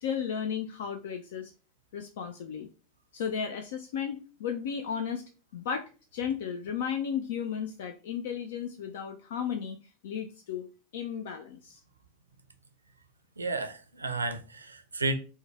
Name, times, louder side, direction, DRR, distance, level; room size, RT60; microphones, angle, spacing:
voice 1, 0.0-1.5 1.9-2.7 3.1-5.2 5.5-9.8 10.0-10.7 10.9-11.8, left 7 dB, 60° left, 0.3 m, -34 dB
voice 2, 13.4-15.1, right 3 dB, 80° right, 0.4 m, -32 dB
3.1 x 2.2 x 3.4 m
figure-of-eight pair, 85°, 0 cm